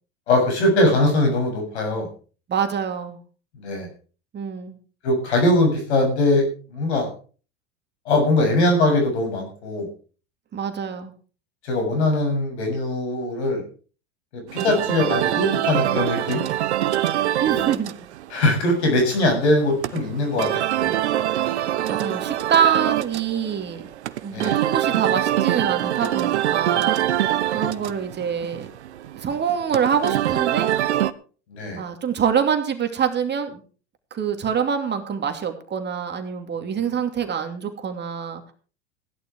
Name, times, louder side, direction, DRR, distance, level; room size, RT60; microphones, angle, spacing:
voice 1, 0.3-2.1 3.6-3.9 5.0-6.4 6.7-7.1 8.1-9.9 11.6-13.6 14.3-16.4 18.3-20.9 24.3-24.5 27.5-27.6 31.5-31.8 36.6-36.8, left 1 dB, 75° left, 4 dB, 7.5 m, -21 dB
voice 2, 2.5-3.2 4.3-4.8 10.5-11.1 17.4-17.9 21.9-23.8 24.2-28.7 29.1-30.7 31.8-33.6 34.1-38.5, right 7 dB, 30° right, 6 dB, 2.7 m, -25 dB
sound 1, 14.5-31.1, right 12 dB, 80° right, 1.0 m, -24 dB
16.0 x 11.5 x 4.7 m, 0.39 s
hypercardioid pair, 90°, 34 cm